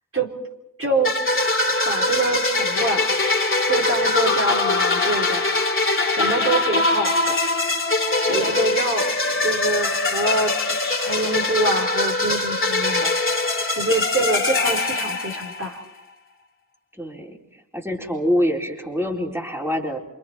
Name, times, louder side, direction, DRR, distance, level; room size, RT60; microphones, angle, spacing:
voice 1, 0.8-1.1 1.6-3.1 3.7-5.5 6.1-7.4 8.2-13.1 13.8-15.8, right 2 dB, 40° right, -1 dB, 4.2 m, -25 dB
sound 1, 1.0-15.8, left 2 dB, 35° left, 2.7 m, -22 dB
voice 2, 16.9-20.0, equal, 5° right, -1 dB, 4.1 m, -25 dB
28.5 x 26.5 x 4.5 m, 0.92 s
wide cardioid pair, 75°, 34 cm